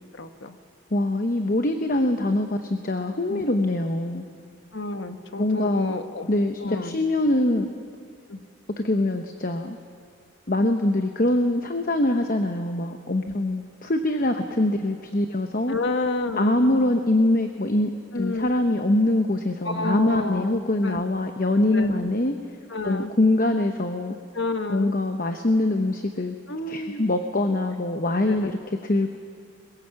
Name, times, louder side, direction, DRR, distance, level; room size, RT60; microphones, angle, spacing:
voice 1, 0.1-0.6 3.3-3.4 4.7-6.3 6.6-7.0 8.3-8.4 13.2-13.4 15.7-16.9 18.1-18.5 19.6-21.0 21.7-21.9 22.7-23.1 24.3-24.9 26.5-27.1 28.2-28.5, left 2 dB, 65° left, 8 dB, 1.2 m, -30 dB
voice 2, 0.9-4.2 5.4-6.0 6.3-7.7 8.8-9.8 10.5-15.8 16.3-22.3 22.8-24.2 24.7-26.3 26.7-28.6 28.8-29.2, left 1 dB, 40° left, 6 dB, 0.9 m, -23 dB
22.0 x 21.5 x 7.7 m, 2.2 s
head